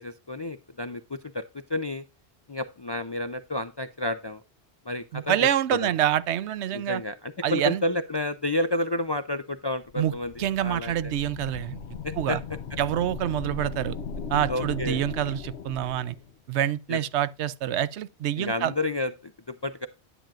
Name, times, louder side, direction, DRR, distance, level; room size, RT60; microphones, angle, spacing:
voice 1, 0.0-1.4 1.7-2.0 2.5-4.4 4.9-5.4 5.7-5.9 6.7-10.3 10.6-11.1 12.0-12.4 14.5-15.0 16.9-17.0 18.4-19.9, left 1 dB, 40° left, 0.3 m, -30 dB
voice 2, 5.1-7.0 7.4-7.8 10.0-10.1 10.4-11.8 12.2-12.4 12.8-14.0 14.3-16.2 16.5-18.7, right 11 dB, 85° right, 0.9 m, -26 dB
sound 1, 9.8-16.3, left 5 dB, 85° left, 1.1 m, -38 dB
10.0 x 8.8 x 2.4 m
omnidirectional pair, 1.1 m